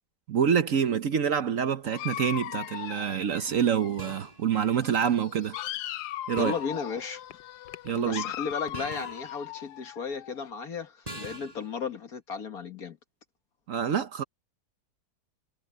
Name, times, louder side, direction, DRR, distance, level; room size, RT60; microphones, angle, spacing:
voice 1, 0.3-5.6 6.3-6.5 7.8-8.2 13.7-14.2, right 8 dB, 60° right, 1.1 m, -26 dB
Dog, 1.8-4.2 4.5-10.5, left 14 dB, 75° left, 1.1 m, -39 dB
sound 1, 2.7-3.0 4.0-4.5 6.4-6.9 8.7-9.4 11.1-11.7, right 1 dB, 20° right, 5.3 m, -42 dB
voice 2, 6.3-7.2 7.9-13.0, left 5 dB, 60° left, 2.1 m, -35 dB
omnidirectional pair, 1.8 m